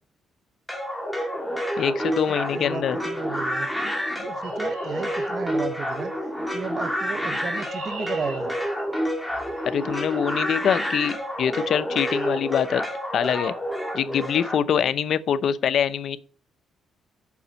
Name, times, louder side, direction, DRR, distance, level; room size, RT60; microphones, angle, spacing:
sound 1, 0.7-14.6, equal, 5° left, 2.2 m, -29 dB
voice 1, 1.8-3.0 9.7-12.9 13.1-13.5 13.9-16.2, left 8 dB, 65° left, 0.6 m, -24 dB
voice 2, 2.3-3.7 4.2-8.5, right 5 dB, 50° right, 0.7 m, -34 dB
Chirp tweet, 4.4-6.1 7.1-10.2 11.3-11.6 12.2-12.5 12.7-12.9 13.3-13.5, right 4 dB, 85° right, 3.3 m, -46 dB
7.1 x 5.0 x 6.8 m
cardioid pair, 90°, 0 cm